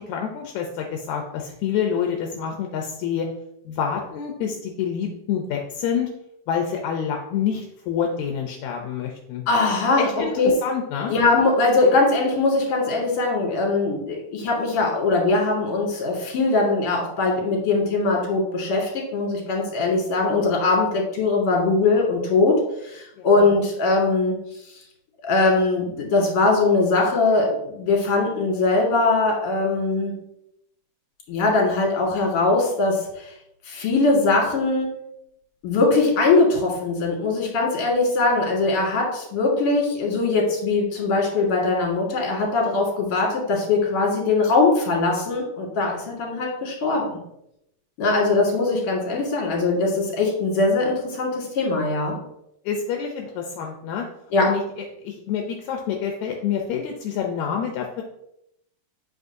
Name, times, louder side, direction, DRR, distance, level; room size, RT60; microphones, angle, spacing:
voice 1, 0.0-3.3 3.7-6.1 6.5-9.4 10.0-11.1 23.2-23.3 52.7-54.1 54.4-58.0, left 7 dB, 80° left, 2 dB, 1.9 m, -27 dB
voice 2, 9.5-10.1 10.4-10.5 11.1-24.3 25.2-30.1 31.3-33.3 33.7-34.9 35.6-47.2 48.0-52.2 54.3-54.5, left 3 dB, 50° left, -2 dB, 2.7 m, -21 dB
7.8 x 5.6 x 2.7 m, 0.79 s
omnidirectional pair, 3.6 m